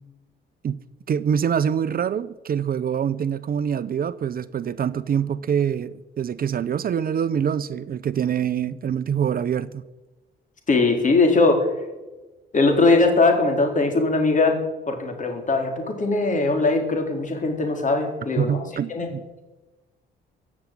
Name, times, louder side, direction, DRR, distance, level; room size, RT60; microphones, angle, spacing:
voice 1, 1.1-9.8 18.4-19.2, right 8 dB, 50° right, 15 dB, 0.7 m, -25 dB
voice 2, 10.7-11.7 12.5-14.6 14.9-18.6 18.9-19.1, left 3 dB, 40° left, 4 dB, 4.0 m, -20 dB
15.5 x 7.3 x 9.2 m, 1.1 s
cardioid pair, 90°, 20 cm